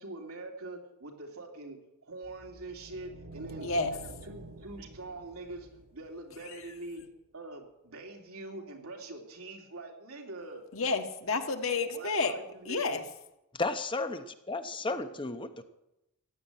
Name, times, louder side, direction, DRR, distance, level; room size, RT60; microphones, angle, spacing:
voice 1, 0.0-7.1 7.3-10.7 11.9-13.0 14.8-15.6, right 2 dB, 75° right, 2 dB, 2.8 m, -44 dB
sound 1, 2.2-6.7, right 1 dB, 60° right, 1.2 m, -48 dB
voice 2, 3.6-3.9 6.4-6.6 10.7-12.3 12.6-13.0, left 4 dB, 65° left, 5 dB, 1.6 m, -30 dB
voice 3, 13.5-15.6, left 3 dB, 20° left, 9 dB, 0.8 m, -33 dB
15.5 x 10.0 x 9.1 m, 0.90 s
head